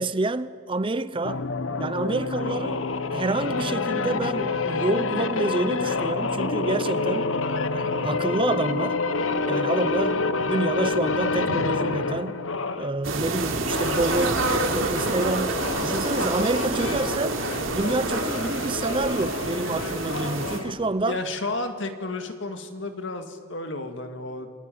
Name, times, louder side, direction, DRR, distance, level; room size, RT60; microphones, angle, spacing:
voice 1, 0.0-1.4 1.8-7.3 7.7-9.0 9.5-12.4 12.8-17.4 17.7-21.2, right 2 dB, 25° right, 0.6 m, -28 dB
sound 1, 1.2-12.9 13.6-20.7, left 3 dB, 85° left, 1.2 m, -28 dB
sound 2, 13.0-20.6, right 2 dB, 85° right, 3.4 m, -27 dB
voice 2, 21.1-24.5, left 2 dB, 65° left, 2.2 m, -32 dB
28.5 x 21.5 x 9.3 m
head